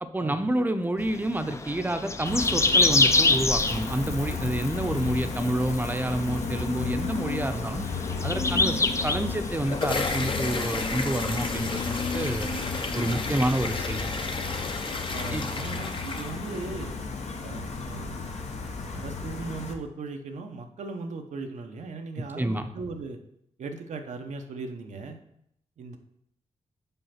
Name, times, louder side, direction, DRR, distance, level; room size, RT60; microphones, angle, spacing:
voice 1, 0.0-7.9 8.2-12.5 12.9-14.1 15.3-15.5 22.4-22.7, right 1 dB, 15° right, 8 dB, 0.7 m, -29 dB
sound 1, 1.0-14.0, left 3 dB, 25° left, 0.5 m, -29 dB
Gull seagull, 2.3-19.7, left 4 dB, 65° left, 1.0 m, -33 dB
sound 2, 9.3-16.8, left 3 dB, 45° left, 0.9 m, -33 dB
voice 2, 15.1-16.9 17.4-18.2 18.9-23.2 23.6-25.2 25.8-26.0, right 4 dB, 80° right, 5 dB, 0.9 m, -38 dB
5.6 x 5.0 x 5.8 m, 0.75 s
cardioid pair, 70°, 12 cm